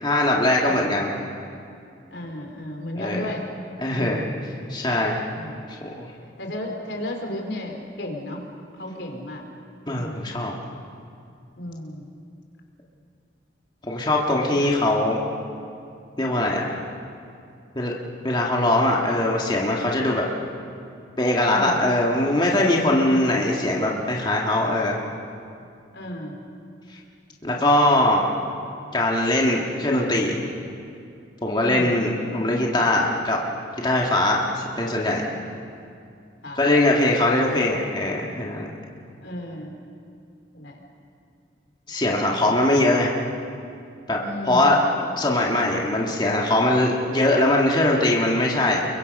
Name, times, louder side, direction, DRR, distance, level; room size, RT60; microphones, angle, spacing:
voice 1, 0.0-1.1 3.0-3.3 3.8-4.2 4.7-5.2 5.8-6.1 9.9-10.6 13.8-15.2 16.2-16.8 17.8-17.9 18.2-20.3 21.2-25.0 27.4-28.3 28.9-30.4 31.4-33.4 33.8-35.3 36.6-38.7 41.9-43.1 44.1-44.2 44.5-44.8 45.2-48.8, left 1 dB, 25° left, -2 dB, 2.1 m, -21 dB
voice 2, 0.6-1.0 2.1-3.5 3.8-4.4 5.3-5.6 6.4-8.5 8.7-9.4 9.9-10.4 11.6-12.1 14.5-14.7 21.5-21.8 23.0-23.4 25.9-26.4 31.6-32.0 36.4-36.6 39.2-39.8 40.5-40.8 44.2-44.9, left 1 dB, 75° left, 2 dB, 3.6 m, -34 dB
30.0 x 23.0 x 5.5 m, 2.4 s
head